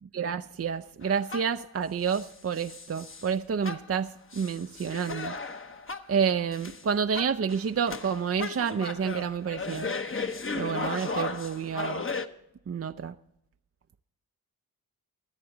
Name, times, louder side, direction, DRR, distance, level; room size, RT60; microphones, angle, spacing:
voice 1, 0.1-5.3 6.1-9.9 10.5-12.1 12.7-13.1, right 7 dB, 40° right, 9 dB, 0.5 m, -29 dB
sound 1, 1.0-1.7 2.1-3.3 3.6-6.2 6.5-6.8 7.1-12.3, left 4 dB, 35° left, 1.0 m, -35 dB
24.5 x 8.3 x 3.9 m, 0.79 s
cardioid pair, 65°, 37 cm